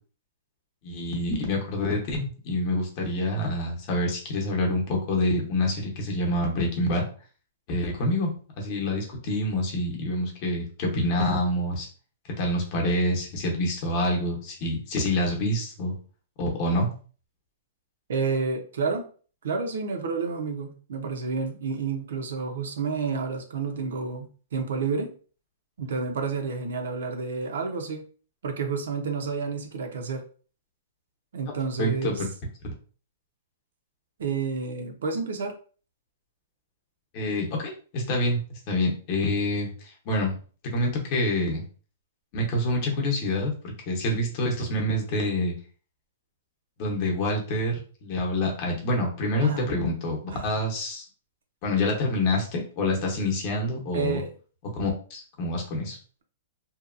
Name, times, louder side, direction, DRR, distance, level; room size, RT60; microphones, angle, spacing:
voice 1, 0.8-7.0 7.7-8.3 8.6-11.9 12.4-15.9 16.4-16.9 31.8-32.3 37.1-40.3 40.7-41.6 42.3-43.5 43.9-45.5 46.8-51.0 51.6-54.2 54.7-56.0, left 1 dB, 35° left, 0 dB, 0.8 m, -27 dB
voice 2, 18.1-19.1 19.4-25.1 25.8-28.0 28.4-30.2 31.3-32.2 34.2-35.5 49.4-49.7 50.3-50.6 53.9-54.3, right 5 dB, 75° right, 5 dB, 0.6 m, -30 dB
2.7 x 2.2 x 2.5 m, 0.40 s
hypercardioid pair, 160°, 0 cm